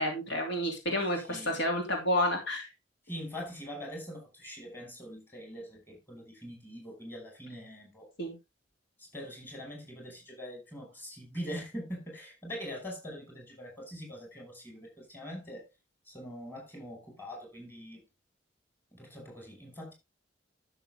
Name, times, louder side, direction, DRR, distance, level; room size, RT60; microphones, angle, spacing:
voice 1, 0.0-2.7 8.2-8.3, left 1 dB, 60° left, 2.8 m, -30 dB
voice 2, 1.2-1.6 3.1-8.1 9.1-15.7 16.1-18.0 18.9-19.9, equal, 10° left, 5.5 m, -43 dB
12.5 x 6.9 x 3.6 m
head